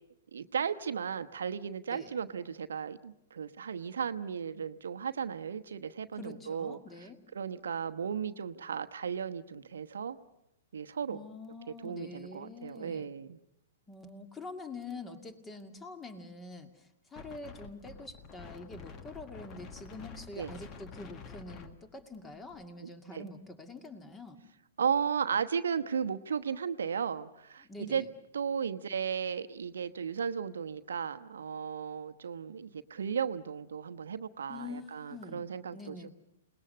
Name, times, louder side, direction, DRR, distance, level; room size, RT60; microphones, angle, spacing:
voice 1, 0.3-6.8 7.3-10.2 10.7-11.2 11.8-13.4 20.4-20.5 22.8-23.3 24.8-28.0 28.3-36.1, right 7 dB, 70° right, 10 dB, 1.0 m, -35 dB
voice 2, 6.1-7.2 11.1-13.1 13.9-24.4 27.7-28.1 34.5-36.1, left 3 dB, 15° left, 8 dB, 2.3 m, -46 dB
Wind, 17.2-22.7, left 5 dB, 30° left, 1.6 m, -49 dB
28.5 x 20.0 x 6.6 m, 0.84 s
figure-of-eight pair, 115°, 0 cm